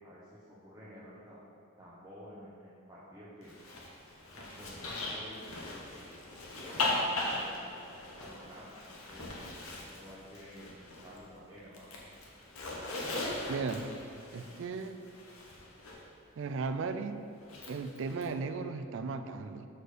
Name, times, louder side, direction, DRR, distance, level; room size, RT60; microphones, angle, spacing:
voice 1, 0.0-1.4 1.8-3.5 4.3-5.5 5.9-6.2 6.4-7.6 8.2-8.7 9.1-9.3 9.7-10.7 11.0-11.9, equal, 15° right, -10 dB, 1.0 m, -51 dB
Zipper (clothing), 3.4-11.3 11.6-16.0 17.4-18.3, left 2 dB, 75° left, 1.1 m, -39 dB
voice 2, 13.5-13.9 14.3-15.0 16.4-17.2 17.6-19.7, right 4 dB, 55° right, 9 dB, 0.3 m, -36 dB
6.4 x 4.4 x 5.0 m, 2.7 s
head